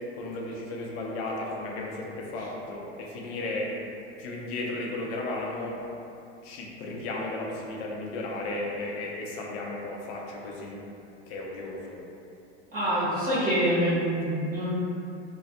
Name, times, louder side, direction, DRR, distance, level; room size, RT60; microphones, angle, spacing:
voice 1, 0.1-3.7 4.2-5.8 6.4-10.8 11.3-12.0, left 2 dB, 65° left, -2 dB, 0.6 m, -34 dB
voice 2, 12.7-14.8, equal, 25° right, -11 dB, 0.8 m, -26 dB
2.3 x 2.1 x 2.7 m, 2.7 s
hypercardioid pair, 100°, 33 cm